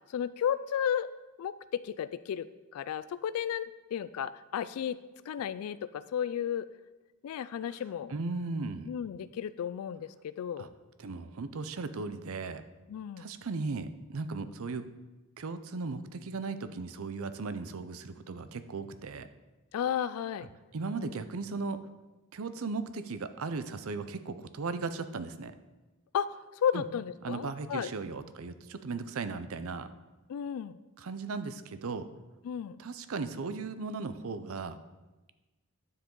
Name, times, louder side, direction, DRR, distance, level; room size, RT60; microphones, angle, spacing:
voice 1, 0.1-1.1 1.4-5.0 5.3-6.7 7.2-8.1 8.9-10.7 12.9-13.3 19.7-20.5 21.0-21.2 26.1-27.9 30.3-30.8 32.4-32.8, left 8 dB, 80° left, 14 dB, 0.3 m, -33 dB
voice 2, 8.1-8.9 10.6-10.7 11.0-12.6 13.2-14.9 15.4-19.3 20.7-21.8 22.3-25.5 26.7-26.8 27.2-29.9 31.0-32.1 32.8-34.8, right 4 dB, 70° right, 12 dB, 0.6 m, -37 dB
9.9 x 7.3 x 3.8 m, 1.2 s
head